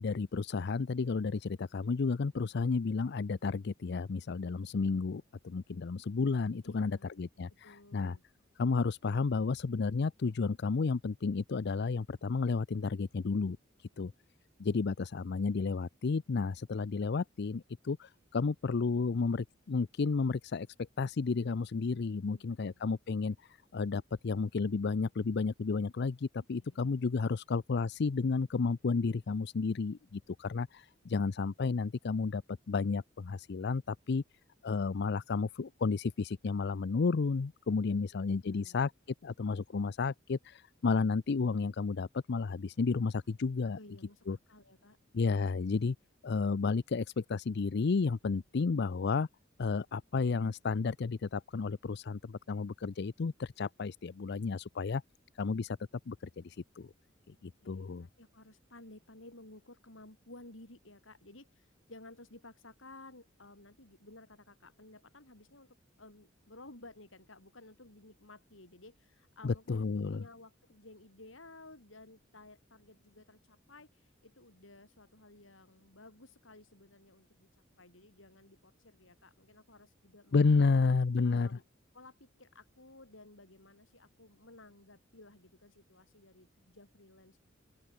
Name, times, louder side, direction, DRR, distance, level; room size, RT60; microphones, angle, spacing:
voice 1, 0.0-8.2 8.6-14.1 14.6-20.7 21.0-32.4 32.7-34.2 34.6-38.9 39.2-43.8 44.3-44.4 45.1-46.0 46.2-49.3 49.6-55.0 55.4-55.8 56.1-56.9 57.3-58.1 69.4-70.2 80.3-81.5, left 4 dB, 60° left, 0.5 m, -32 dB
voice 2, 6.6-7.2 7.5-8.2 13.9-14.0 22.2-22.8 26.4-27.0 37.9-38.9 43.7-45.0 57.6-77.5 77.8-80.7 81.2-81.6 81.9-87.5, left 2 dB, 80° left, 6.9 m, -55 dB
open air
head